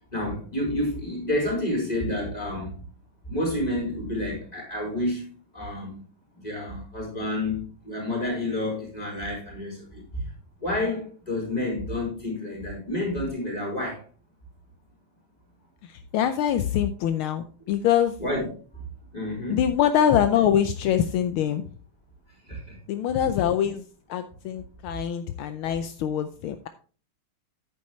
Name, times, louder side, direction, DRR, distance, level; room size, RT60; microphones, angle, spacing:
voice 1, 0.1-2.7 3.3-5.2 5.5-6.0 6.4-10.3 10.6-14.0 18.2-18.5 19.1-19.6 22.5-22.8, left 1 dB, 15° left, -2 dB, 4.9 m, -29 dB
voice 2, 15.8-18.2 19.5-21.7 22.9-26.7, left 9 dB, 80° left, 9 dB, 1.5 m, -24 dB
10.5 x 9.1 x 3.1 m, 0.40 s
omnidirectional pair, 2.4 m